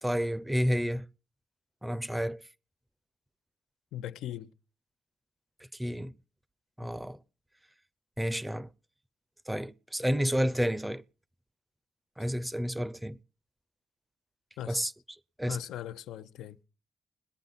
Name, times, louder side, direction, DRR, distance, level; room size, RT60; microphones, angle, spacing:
voice 1, 0.0-1.0 1.8-2.4 5.8-6.1 6.8-7.2 8.2-8.7 9.5-11.0 12.2-13.2 14.7-14.9 15.4-15.6, equal, 5° right, 0.6 m, -30 dB
voice 2, 3.9-4.5 14.6-14.8 15.5-16.6, left 12 dB, 90° left, 0.6 m, -39 dB
21.0 x 8.7 x 4.1 m
cardioid pair, 90°, 0 cm